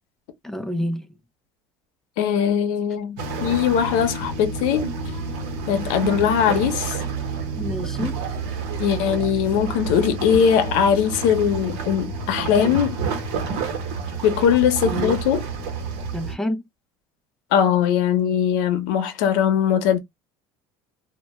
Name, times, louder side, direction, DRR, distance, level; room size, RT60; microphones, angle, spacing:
voice 1, 0.4-1.1 7.6-8.2 14.8-15.2 16.1-16.6, left 1 dB, 5° left, 0.3 m, -28 dB
voice 2, 2.2-4.9 5.7-7.0 8.8-13.0 14.2-15.4 17.5-20.0, left 8 dB, 80° left, 0.6 m, -20 dB
sound 1, 3.2-16.3, right 4 dB, 75° right, 0.9 m, -29 dB
2.1 x 2.1 x 3.0 m
cardioid pair, 135°, 11 cm